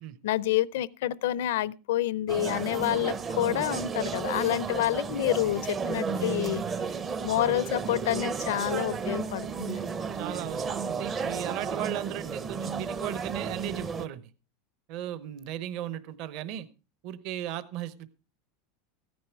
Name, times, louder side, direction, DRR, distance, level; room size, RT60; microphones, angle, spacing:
voice 1, 0.2-6.6 7.2-9.8, left 14 dB, 80° left, 0.5 m, -28 dB
sound 1, 2.3-14.1, right 5 dB, 20° right, 0.6 m, -33 dB
voice 2, 10.1-14.2 14.9-16.7 17.0-18.1, right 12 dB, 45° right, 0.9 m, -36 dB
15.0 x 9.5 x 4.5 m
supercardioid pair, 165°, 0 cm